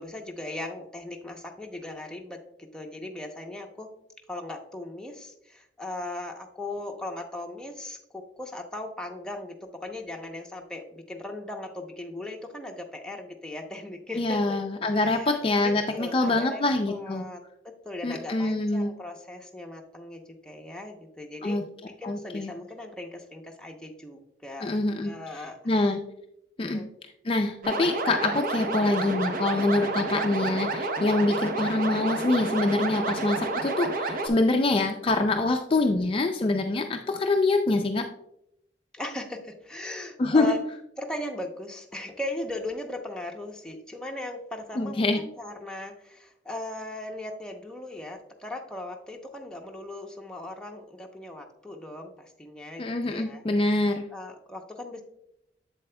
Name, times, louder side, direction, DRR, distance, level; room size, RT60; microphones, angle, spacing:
voice 1, 0.0-3.9 4.3-14.6 14.9-15.3 15.6-16.6 16.9-21.6 22.0-24.7 25.0-25.6 26.6-26.9 30.4-30.6 35.8-36.0 38.9-40.6 41.0-53.8 54.1-55.0, left 1 dB, 5° left, 1 dB, 0.7 m, -38 dB
voice 2, 14.2-17.3 18.0-18.9 21.4-21.6 22.0-22.5 24.6-25.1 25.4-26.0 26.6-26.8 27.2-38.1 40.2-40.6 44.8-45.2 52.8-54.0, left 2 dB, 30° left, 4 dB, 0.4 m, -25 dB
sound 1, 27.6-34.3, right 3 dB, 50° right, 0.7 m, -30 dB
7.6 x 7.6 x 2.2 m, 0.79 s
head